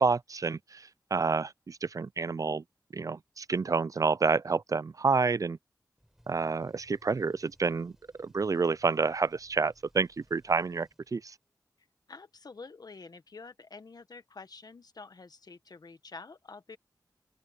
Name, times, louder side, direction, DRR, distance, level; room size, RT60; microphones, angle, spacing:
voice 1, 0.0-2.6 2.9-5.6 6.3-7.9 8.2-11.3, right 4 dB, 55° right, 0.4 m, -29 dB
Large Alien Machine Call, 6.0-11.5, equal, 5° right, 6.1 m, -64 dB
voice 2, 12.1-16.8, left 4 dB, 65° left, 1.4 m, -48 dB
open air
cardioid pair, 50°, 7 cm